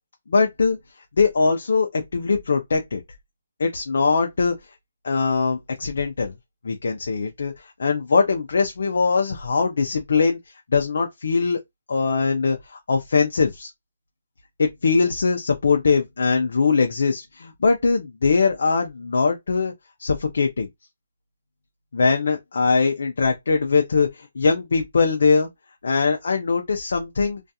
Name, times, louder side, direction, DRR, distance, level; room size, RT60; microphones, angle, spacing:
voice 1, 0.3-0.8 1.2-3.0 3.6-4.5 5.0-6.3 6.6-10.4 10.7-11.6 11.9-13.7 14.6-19.7 20.0-20.7 21.9-25.5 25.8-27.4, left 4 dB, 60° left, 0.4 m, -21 dB
2.3 x 2.3 x 2.7 m
hypercardioid pair, 175°, 0 cm